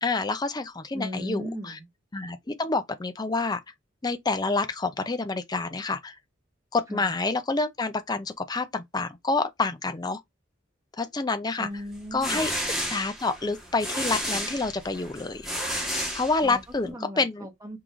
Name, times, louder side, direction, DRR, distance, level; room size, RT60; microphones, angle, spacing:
voice 1, 0.0-1.5 2.1-3.6 4.0-6.1 6.7-10.2 11.0-11.7 12.1-12.5 12.9-15.5 16.1-17.5, left 3 dB, 20° left, 0.5 m, -28 dB
voice 2, 0.9-1.9 6.9-7.1 11.6-12.5 16.4-17.8, equal, 15° right, 1.3 m, -37 dB
sound 1, 11.9-16.8, equal, ahead, 1.4 m, -32 dB
4.7 x 3.6 x 2.6 m
head